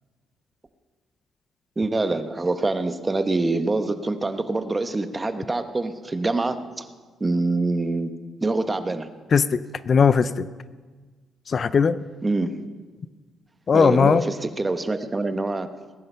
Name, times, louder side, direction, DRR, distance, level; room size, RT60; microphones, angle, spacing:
voice 1, 1.8-6.8 7.2-8.1 8.4-9.1 12.2-12.5 13.7-15.7, right 2 dB, 20° right, 9 dB, 1.1 m, -25 dB
voice 2, 9.3-10.5 11.5-12.0 13.7-14.2, left 6 dB, 45° left, 15 dB, 0.5 m, -19 dB
20.0 x 10.5 x 5.7 m, 1.4 s
cardioid pair, 90°, 0 cm